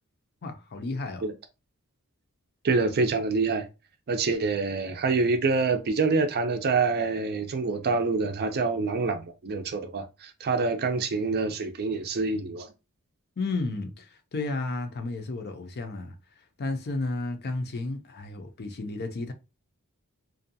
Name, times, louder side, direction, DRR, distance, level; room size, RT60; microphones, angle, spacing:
voice 1, 0.4-1.2 13.4-16.2 16.6-19.3, left 2 dB, 45° left, 0.5 m, -32 dB
voice 2, 2.6-3.6 4.1-12.7, right 4 dB, 45° right, 0.5 m, -26 dB
2.6 x 2.2 x 2.7 m
head